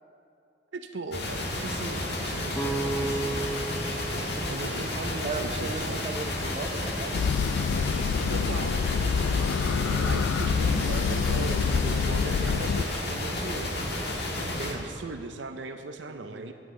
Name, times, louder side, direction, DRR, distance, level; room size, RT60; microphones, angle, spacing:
voice 1, 0.7-3.5 4.4-6.1 8.3-8.9 9.9-13.7 14.5-16.5, right 3 dB, 70° right, 6 dB, 0.6 m, -38 dB
sound 1, 1.1-14.7, left 1 dB, 60° left, 1.7 m, -31 dB
sound 2, 2.5-6.3, right 2 dB, 10° left, 0.7 m, -35 dB
voice 2, 5.2-7.2 16.1-16.5, right 2 dB, 35° right, 5 dB, 0.8 m, -36 dB
sound 3, 7.1-12.8, left 6 dB, 90° left, 0.3 m, -27 dB
19.5 x 9.2 x 3.8 m, 2.6 s
head